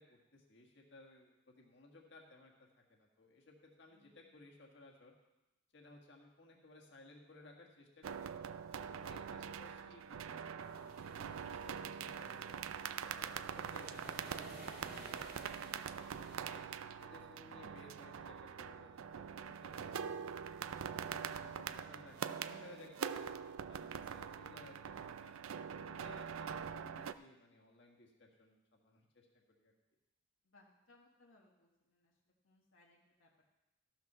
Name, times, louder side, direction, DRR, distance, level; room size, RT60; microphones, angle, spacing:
voice 1, 0.0-2.5 2.9-5.1 5.7-8.3 8.8-14.4 14.8-16.6 17.0-20.4 21.0-23.3 23.7-29.3 29.6-29.7, left 2 dB, 55° left, 0 dB, 1.7 m, -59 dB
voice 2, 3.9-4.5 8.9-9.5 17.5-17.8 25.8-26.2 30.4-33.3, left 2 dB, 75° left, -2 dB, 1.4 m, -69 dB
sound 1, 8.0-27.1, right 7 dB, 80° right, 0.4 m, -44 dB
sound 2, 10.6-16.5, right 2 dB, 45° right, 2.0 m, -56 dB
14.0 x 5.9 x 6.1 m, 0.98 s
head